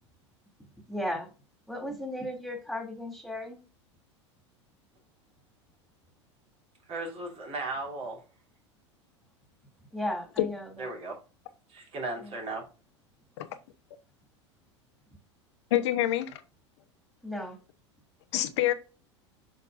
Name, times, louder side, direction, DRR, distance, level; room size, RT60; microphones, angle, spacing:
voice 1, 0.9-1.3 1.7-3.6 9.9-10.9 12.2-12.3 17.2-17.6, left 1 dB, ahead, 2.7 m, -35 dB
voice 2, 6.9-8.2 10.8-11.2 11.7-12.7, right 2 dB, 40° right, 3.2 m, -36 dB
voice 3, 15.7-16.4 18.3-18.7, left 14 dB, 65° left, 0.9 m, -26 dB
7.7 x 5.8 x 2.6 m
hypercardioid pair, 85°, 15 cm